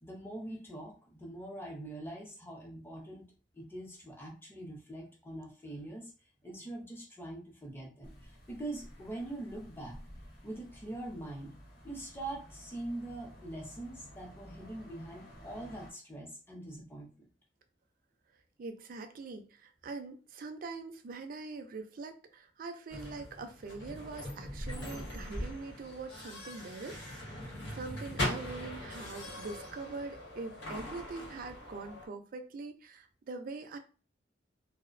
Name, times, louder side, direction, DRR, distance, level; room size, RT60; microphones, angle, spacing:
voice 1, 0.0-3.3 3.5-6.1 6.4-10.0 10.4-11.5 11.8-17.3, right 1 dB, 15° left, -2 dB, 0.6 m, -43 dB
sound 1, 8.0-15.9, equal, 60° left, 0.9 m, -53 dB
voice 2, 18.6-33.8, right 3 dB, 50° right, 7 dB, 0.4 m, -43 dB
sound 2, 22.9-32.1, left 1 dB, 85° left, 1.1 m, -41 dB
2.5 x 2.1 x 2.4 m, 0.36 s
head